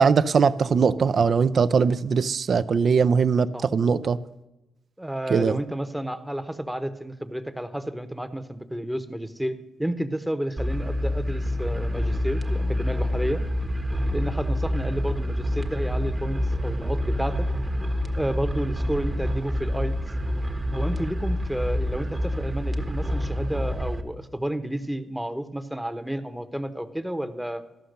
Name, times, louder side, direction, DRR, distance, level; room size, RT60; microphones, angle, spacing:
voice 1, 0.0-4.2 5.3-5.6, right 5 dB, 55° right, 13 dB, 0.5 m, -20 dB
voice 2, 5.0-13.4 14.1-17.5 18.1-20.0 20.7-27.6, right 1 dB, 5° right, 10 dB, 0.9 m, -31 dB
sound 1, 10.6-24.0, equal, 25° right, 1.1 m, -27 dB
13.0 x 5.8 x 6.5 m, 1.0 s
cardioid pair, 70°, 0 cm